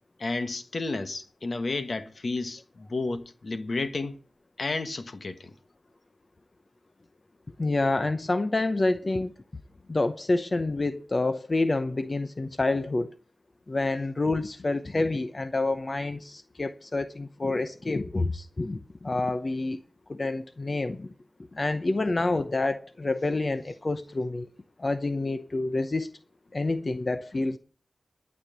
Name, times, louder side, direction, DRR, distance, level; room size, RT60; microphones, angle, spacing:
voice 1, 0.2-4.2 4.6-5.5 27.3-27.4, left 3 dB, 60° left, 1.4 m, -32 dB
voice 2, 7.6-9.3 9.9-13.1 13.7-19.8 20.1-21.1 21.5-24.5 24.8-26.1 26.5-27.6, left 2 dB, 40° left, 0.8 m, -28 dB
12.0 x 6.3 x 8.8 m
wide cardioid pair, 75°, 0 cm